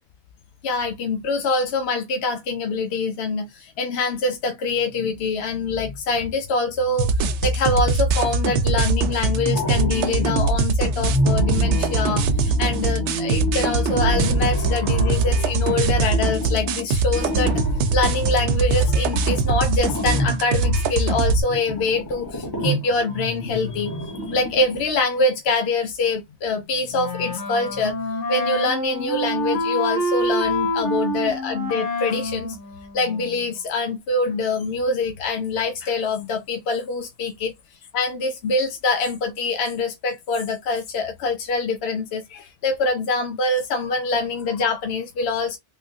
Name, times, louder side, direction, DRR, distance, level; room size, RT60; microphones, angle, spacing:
voice 1, 0.6-17.6 17.9-24.0 24.3-28.0 28.3-32.6 32.9-37.5 37.9-45.6, left 3 dB, 70° left, 0.9 m, -24 dB
sound 1, 7.0-21.4, right 3 dB, 80° right, 0.9 m, -22 dB
sound 2, 9.2-10.6 10.9-24.8, left 1 dB, 20° left, 1.0 m, -28 dB
Wind instrument woodwind instrument, 26.9-33.5, left 1 dB, 85° left, 1.5 m, -26 dB
3.6 x 2.5 x 2.6 m
omnidirectional pair, 1.2 m